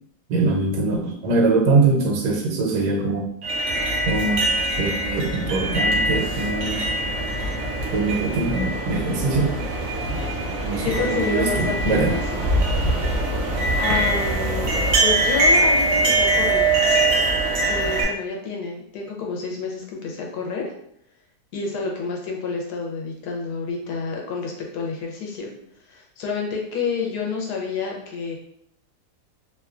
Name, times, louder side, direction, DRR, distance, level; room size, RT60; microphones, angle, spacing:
voice 1, 0.3-3.3 4.1-4.4 4.8-6.8 7.9-9.6 10.1-10.2 10.6-12.1, right 3 dB, 80° right, 0 dB, 1.2 m, -22 dB
sound 1, 3.4-18.0, right 2 dB, 60° right, 0.8 m, -22 dB
voice 2, 10.8-12.5 13.8-14.7 15.0-16.7 17.7-20.6 21.5-25.5 25.9-28.4, left 4 dB, 75° left, 0 dB, 1.1 m, -29 dB
2.9 x 2.2 x 2.3 m, 0.71 s
omnidirectional pair, 1.8 m